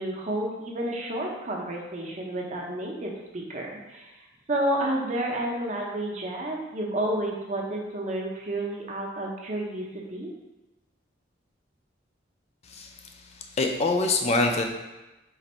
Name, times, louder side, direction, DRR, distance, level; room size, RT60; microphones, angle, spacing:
voice 1, 0.0-4.1 4.5-10.3, right 1 dB, 40° right, -1 dB, 0.7 m, -30 dB
voice 2, 13.6-14.6, left 2 dB, 35° left, 3 dB, 0.4 m, -24 dB
3.9 x 2.6 x 4.2 m, 1.1 s
head